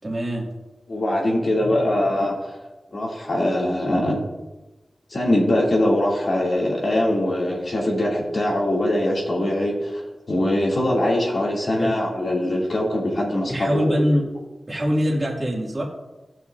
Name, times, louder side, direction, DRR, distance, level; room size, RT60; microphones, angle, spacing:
voice 1, 0.0-0.5 1.6-1.7 11.8-12.0 13.5-14.3 14.7-15.8, equal, 30° right, -3 dB, 2.3 m, -23 dB
voice 2, 0.9-2.6 2.9-4.2 5.1-10.0 10.3-14.0, left 1 dB, 55° left, -3 dB, 2.6 m, -22 dB
18.0 x 6.2 x 2.6 m, 1.1 s
wide cardioid pair, 120°, 0 cm